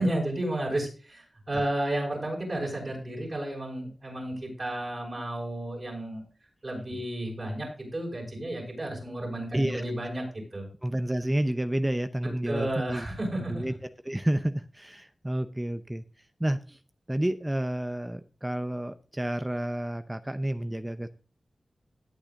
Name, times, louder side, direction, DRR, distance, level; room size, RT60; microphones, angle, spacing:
voice 1, 0.0-6.2 6.6-10.2 10.5-10.7 12.5-13.6, right 1 dB, 45° right, -2 dB, 5.7 m, -32 dB
voice 2, 10.8-13.1 13.5-13.7 14.0-16.0 16.4-16.8 17.1-21.1, right 1 dB, 15° right, 10 dB, 0.6 m, -30 dB
17.5 x 8.1 x 2.5 m, 0.35 s
wide cardioid pair, 65°, 0 cm